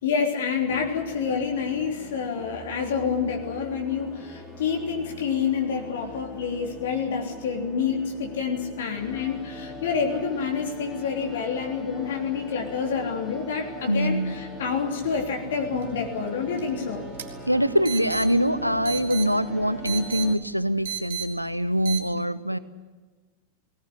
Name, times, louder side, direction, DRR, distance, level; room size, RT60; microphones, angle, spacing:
voice 1, 0.0-17.0, left 6 dB, 60° left, 2 dB, 3.3 m, -28 dB
sound 1, 0.7-20.3, equal, 5° left, 3.5 m, -41 dB
voice 2, 13.9-14.3 17.5-22.6, equal, 90° right, 15 dB, 0.9 m, -24 dB
sound 2, 15.7-22.0, right 9 dB, 55° right, 3.0 m, -37 dB
19.5 x 19.5 x 10.0 m, 1.3 s
figure-of-eight pair, 90°, 0 cm